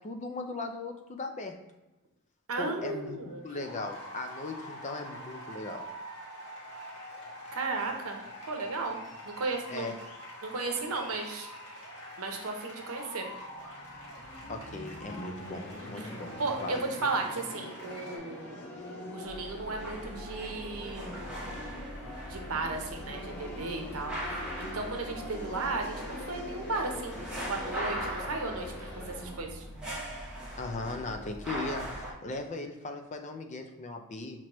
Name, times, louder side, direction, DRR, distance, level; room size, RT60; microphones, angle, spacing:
voice 1, 0.0-1.6 2.6-5.8 9.7-9.9 14.5-16.3 16.6-16.8 30.6-34.4, left 3 dB, 30° left, 5 dB, 0.4 m, -38 dB
voice 2, 2.5-3.4 7.5-8.2 8.5-9.0 9.3-9.9 10.4-11.5 12.2-13.3 16.0-18.5 19.1-21.3 22.3-27.2 27.5-29.6, right 3 dB, 70° right, 3 dB, 0.7 m, -35 dB
sound 1, 3.2-18.2, equal, 85° left, 1.3 m, -45 dB
sound 2, 13.2-31.1, left 1 dB, 50° left, 1.1 m, -44 dB
sound 3, 19.2-32.1, equal, 5° right, 1.0 m, -40 dB
6.0 x 2.9 x 3.0 m, 1.0 s
head